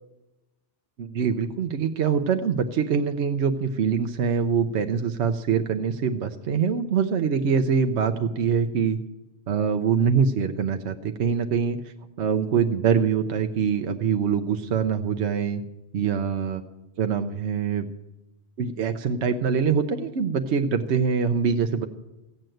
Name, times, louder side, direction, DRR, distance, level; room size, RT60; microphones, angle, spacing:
voice 1, 1.0-9.0 9.5-11.8 12.2-15.6 15.9-16.6 17.0-17.9 18.6-21.9, right 6 dB, 70° right, 7 dB, 1.0 m, -24 dB
15.0 x 9.1 x 7.7 m, 1.0 s
omnidirectional pair, 1.2 m